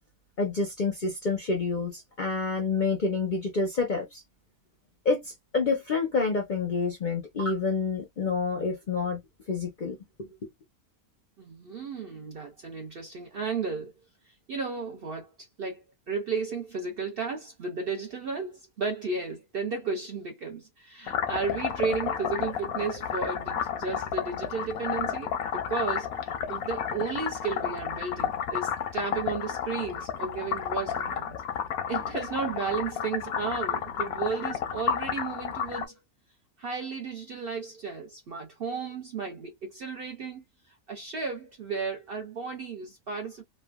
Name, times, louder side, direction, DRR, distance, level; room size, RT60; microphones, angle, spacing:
voice 1, 0.4-4.2 5.0-9.2 9.5-10.0, left 4 dB, 50° left, 0.6 m, -28 dB
voice 2, 11.4-13.9 14.3-15.8 16.1-31.4 31.9-36.0 36.6-40.4 40.9-43.4, right 5 dB, 60° right, 0.6 m, -34 dB
sound 1, 21.1-35.9, left 8 dB, 85° left, 1.1 m, -32 dB
3.2 x 2.2 x 2.2 m
omnidirectional pair, 1.5 m